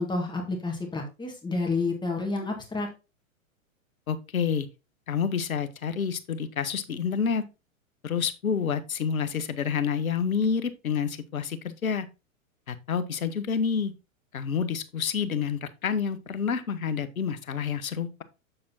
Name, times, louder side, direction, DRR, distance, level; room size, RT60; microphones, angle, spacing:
voice 1, 0.0-2.9, left 3 dB, 10° left, 1.7 m, -29 dB
voice 2, 4.1-4.7 5.1-7.4 8.0-12.1 12.7-13.9 14.3-18.2, left 6 dB, 80° left, 1.0 m, -28 dB
7.6 x 6.8 x 2.8 m
figure-of-eight pair, 105°, 41 cm